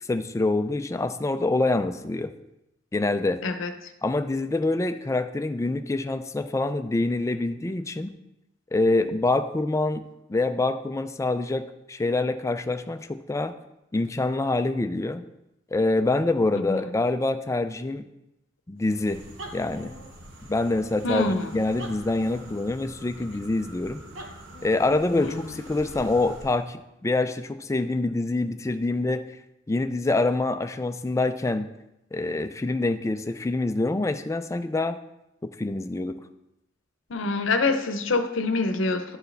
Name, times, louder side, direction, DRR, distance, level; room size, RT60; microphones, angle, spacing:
voice 1, 0.0-2.3 2.9-3.4 4.0-8.1 8.7-10.0 10.3-13.5 13.9-15.2 15.7-18.0 18.7-19.2 19.5-19.9 20.5-21.3 21.5-24.0 24.6-29.3 29.7-31.7 32.1-35.0 35.4-36.2, left 2 dB, 15° left, 9 dB, 0.3 m, -26 dB
sound 1, 18.8-26.7, right 1 dB, 75° right, 1.0 m, -44 dB
voice 2, 21.0-21.5 25.1-25.4 37.1-39.2, left 3 dB, 70° left, 7 dB, 0.7 m, -25 dB
11.5 x 4.6 x 3.3 m, 0.88 s
head